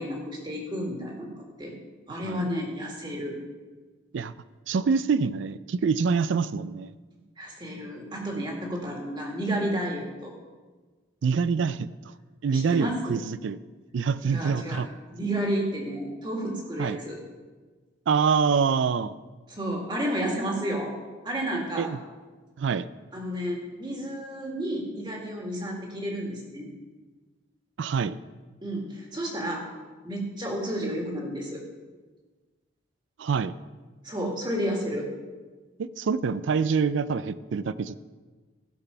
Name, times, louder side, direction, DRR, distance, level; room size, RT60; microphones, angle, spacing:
voice 1, 0.0-1.7 2.1-3.4 7.4-10.3 12.5-13.2 14.2-14.8 15.1-17.2 19.5-20.9 21.2-21.9 23.1-26.7 28.6-29.6 30.0-31.6 34.0-35.1, equal, 25° right, 0 dB, 2.0 m, -31 dB
voice 2, 2.1-2.5 4.1-4.3 4.7-6.9 11.2-12.1 12.4-13.6 13.9-14.9 16.8-17.0 18.1-19.1 21.8-22.0 22.6-22.9 27.8-28.2 33.2-33.5 35.8-38.0, right 5 dB, 70° right, 16 dB, 0.4 m, -26 dB
16.0 x 6.0 x 5.6 m, 1.3 s
head